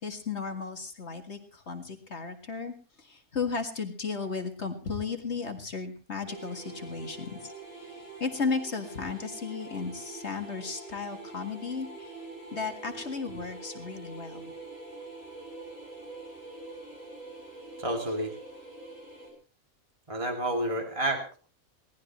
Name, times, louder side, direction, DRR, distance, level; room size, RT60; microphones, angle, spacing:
voice 1, 0.0-2.7 3.1-7.4 8.2-12.1 12.5-14.5, left 5 dB, 50° left, 5 dB, 2.3 m, -34 dB
sound 1, 6.3-19.3, right 2 dB, 80° right, 7.7 m, -45 dB
voice 2, 17.8-18.4 20.1-21.4, right 1 dB, 20° right, 3 dB, 2.7 m, -30 dB
22.5 x 18.0 x 3.1 m, 0.34 s
omnidirectional pair, 1.5 m